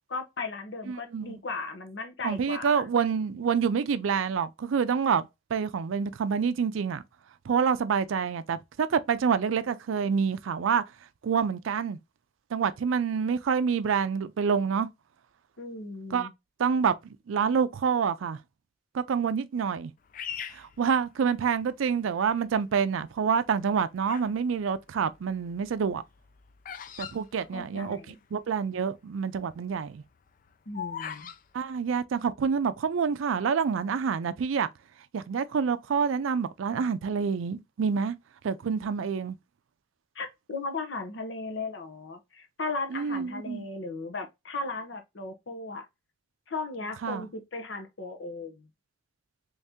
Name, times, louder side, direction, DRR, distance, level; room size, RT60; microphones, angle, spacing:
voice 1, 0.1-2.9 15.6-16.3 27.5-28.2 30.7-31.3 40.1-45.9 46.5-48.7, left 3 dB, 65° left, 0.8 m, -36 dB
voice 2, 0.9-1.4 2.2-7.0 7.5-10.8 11.2-12.0 12.5-14.9 16.1-16.3 16.6-18.4 18.9-19.9 20.5-26.0 27.0-30.0 31.5-34.7 35.1-38.2 38.4-39.4 42.9-43.6 47.0-47.3, right 6 dB, 90° right, 0.4 m, -27 dB
Bird vocalization bird call bird song, 20.1-21.6 22.3-22.7 23.5-24.4 24.7-28.2 28.4-28.5 28.7-29.1 29.5-31.4, left 8 dB, 45° left, 0.3 m, -40 dB
3.2 x 2.7 x 3.5 m
head